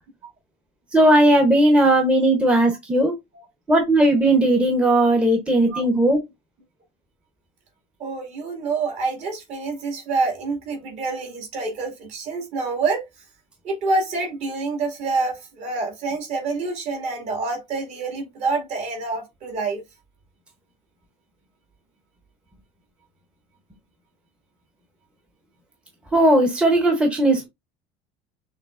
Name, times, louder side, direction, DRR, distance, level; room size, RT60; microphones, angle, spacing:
voice 1, 0.9-3.1 3.7-6.2 26.1-27.5, right 1 dB, 5° right, 0.9 m, -17 dB
voice 2, 8.0-13.1 13.6-19.8, right 3 dB, 45° right, 2.2 m, -27 dB
6.4 x 3.3 x 2.5 m
cardioid pair, 160°, 15 cm